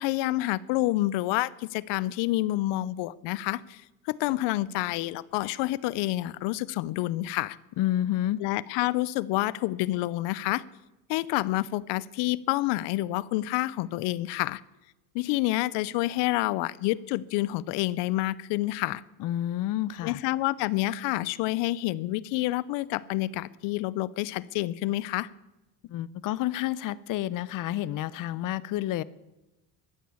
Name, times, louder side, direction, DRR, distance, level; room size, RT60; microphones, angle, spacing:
voice 1, 0.0-7.6 8.4-10.6 11.1-14.6 15.1-19.0 20.0-25.3, left 17 dB, 85° left, 21 dB, 0.7 m, -28 dB
voice 2, 7.8-8.4 19.2-20.2 25.9-29.0, left 13 dB, 50° left, 20 dB, 0.6 m, -29 dB
13.5 x 9.4 x 8.3 m, 0.99 s
cardioid pair, 150°, 42 cm